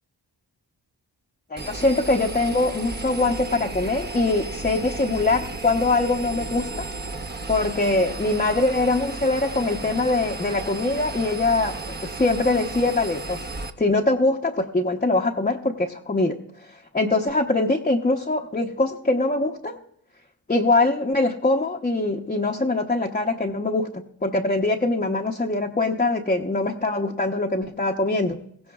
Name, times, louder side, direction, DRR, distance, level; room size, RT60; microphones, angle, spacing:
voice 1, 1.5-6.9 7.5-13.4 13.8-16.4 16.9-19.8 20.5-23.9 24.2-28.4, left 2 dB, 20° left, 0 dB, 0.9 m, -23 dB
Engine, 1.6-13.7, right 3 dB, 25° right, 0.9 m, -34 dB
18.5 x 15.5 x 2.4 m, 0.66 s
cardioid pair, 45°, 44 cm